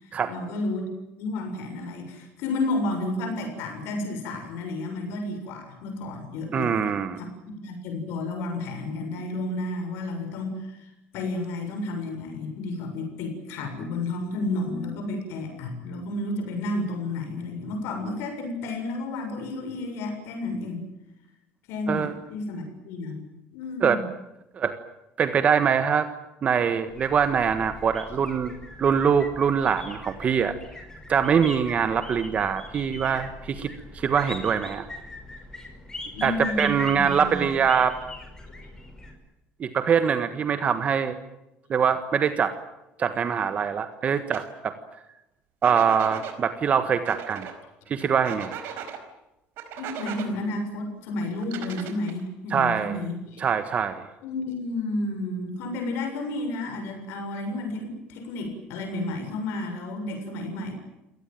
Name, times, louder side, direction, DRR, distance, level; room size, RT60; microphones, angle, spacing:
voice 1, 0.0-0.9 1.2-6.8 7.5-20.9 21.7-23.2 23.5-24.0 36.1-37.4 49.8-53.4 54.2-60.7, left 2 dB, 75° left, 4 dB, 7.1 m, -31 dB
voice 2, 6.5-7.2 21.9-22.1 23.8-24.0 24.5-24.8 25.2-26.1 26.4-28.5 28.8-30.5 31.1-34.9 36.2-38.0 39.6-41.1 41.7-42.5 43.0-44.7 45.6-47.5 47.9-48.6 52.5-53.0 53.4-54.0, right 7 dB, 35° right, 10 dB, 1.5 m, -23 dB
sound 1, 26.9-39.1, left 2 dB, 15° left, 5.4 m, -41 dB
sound 2, 44.3-44.4 45.6-46.4 47.0-47.5 48.2-49.0 49.6-50.3 51.4-52.2, right 8 dB, 65° right, 4.7 m, -37 dB
28.0 x 18.5 x 9.2 m, 0.92 s
cardioid pair, 135°, 4 cm